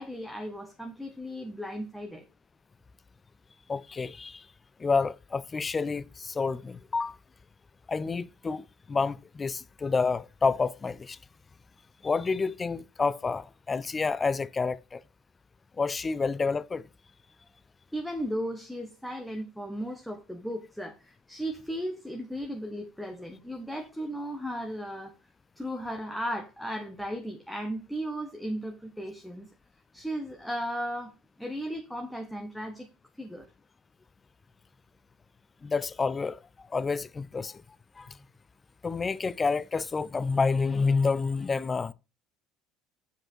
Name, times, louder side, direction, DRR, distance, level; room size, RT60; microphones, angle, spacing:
voice 1, 0.0-2.2 17.9-25.1 25.6-29.5 29.9-31.1 31.4-32.9 33.2-33.5, equal, ahead, 0.9 m, -36 dB
voice 2, 3.7-4.5 4.8-7.2 7.9-11.2 12.0-15.0 15.8-16.9 35.6-37.6 38.0-38.1 38.8-41.9, left 4 dB, 20° left, 0.3 m, -29 dB
7.6 x 5.1 x 4.4 m
cardioid pair, 145°, 0 cm